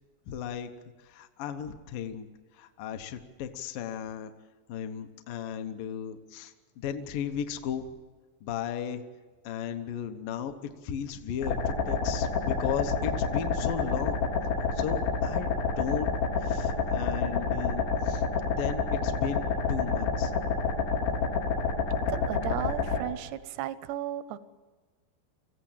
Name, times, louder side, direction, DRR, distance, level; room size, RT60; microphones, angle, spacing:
voice 1, 0.3-0.7 1.0-2.3 2.5-4.3 4.7-7.9 8.4-9.0 9.4-14.2 14.7-18.2 18.5-20.3, left 8 dB, 70° left, 6 dB, 2.3 m, -35 dB
sound 1, 11.4-23.0, left 5 dB, 85° left, 5.5 m, -28 dB
voice 2, 22.1-24.4, right 13 dB, 80° right, 14 dB, 3.0 m, -35 dB
25.5 x 15.5 x 8.8 m, 1.3 s
omnidirectional pair, 5.0 m